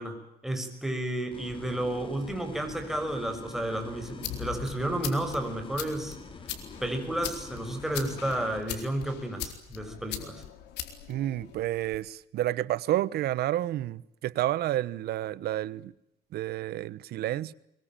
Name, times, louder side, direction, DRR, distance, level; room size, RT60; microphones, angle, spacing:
voice 1, 0.0-6.2 6.8-10.4, right 1 dB, ahead, 6.3 m, -32 dB
sound 1, 1.3-8.6, left 4 dB, 30° left, 3.4 m, -46 dB
sound 2, 3.9-12.0, left 11 dB, 85° left, 4.1 m, -41 dB
voice 2, 11.1-15.9 16.3-17.5, right 13 dB, 70° right, 1.2 m, -30 dB
24.0 x 23.0 x 9.1 m
cardioid pair, 110°, 17 cm